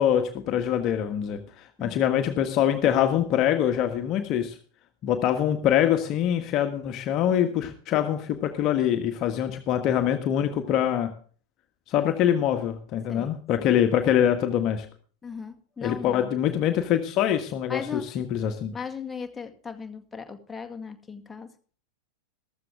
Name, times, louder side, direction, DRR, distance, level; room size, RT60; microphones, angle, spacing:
voice 1, 0.0-1.4 1.8-4.5 5.0-11.1 11.9-14.9 15.8-18.7, left 10 dB, 35° left, 7 dB, 1.5 m, -24 dB
voice 2, 15.2-16.3 17.7-18.1 18.7-21.5, left 5 dB, 10° left, 5 dB, 2.0 m, -37 dB
14.5 x 14.0 x 3.6 m, 0.42 s
figure-of-eight pair, 90°, 0 cm